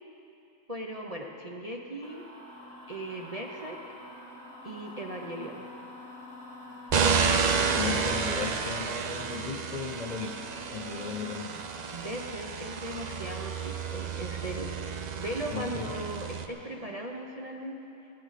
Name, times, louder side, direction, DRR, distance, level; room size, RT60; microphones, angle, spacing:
voice 1, 0.7-2.3 2.9-3.8 4.6-5.7 10.9-11.2 11.9-14.7 15.2-17.8, right 1 dB, 35° right, 0 dB, 0.6 m, -38 dB
sound 1, 2.0-12.2, left 1 dB, 5° left, 2.4 m, -47 dB
sound 2, 6.9-16.5, right 5 dB, 80° right, 0.3 m, -31 dB
voice 2, 7.2-10.3 10.7-11.6 15.5-15.9, left 5 dB, 50° left, 1 dB, 0.5 m, -36 dB
17.0 x 14.0 x 4.1 m, 2.9 s
omnidirectional pair, 1.6 m